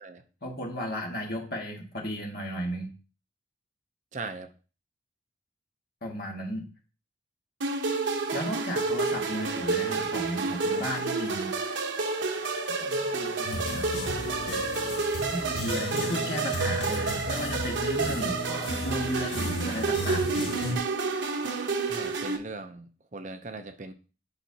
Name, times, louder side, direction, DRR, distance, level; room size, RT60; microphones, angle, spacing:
voice 1, 0.4-2.9 6.0-6.7 8.3-11.5 12.8-13.9 15.3-20.4, equal, 55° left, -1 dB, 1.7 m, -34 dB
voice 2, 4.1-4.5 21.9-22.9 23.1-23.9, right 3 dB, 40° right, 8 dB, 0.6 m, -39 dB
sound 1, 7.6-22.4, right 4 dB, 80° right, 0.9 m, -30 dB
sound 2, 13.4-20.8, left 1 dB, 80° left, 1.4 m, -34 dB
8.9 x 5.5 x 2.8 m, 0.35 s
head